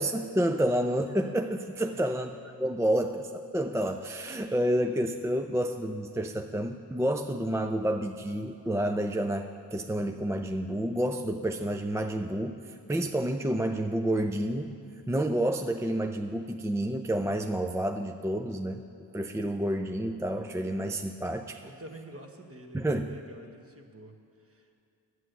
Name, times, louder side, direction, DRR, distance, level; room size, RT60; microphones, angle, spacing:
voice 1, 0.0-2.3 2.6-18.8 19.1-21.7 22.7-23.1, right 1 dB, 5° right, 6 dB, 0.3 m, -29 dB
voice 2, 1.8-2.2 21.6-24.7, right 1 dB, 30° right, 4 dB, 1.3 m, -48 dB
11.0 x 8.0 x 7.9 m, 2.4 s
cardioid pair, 80°, 43 cm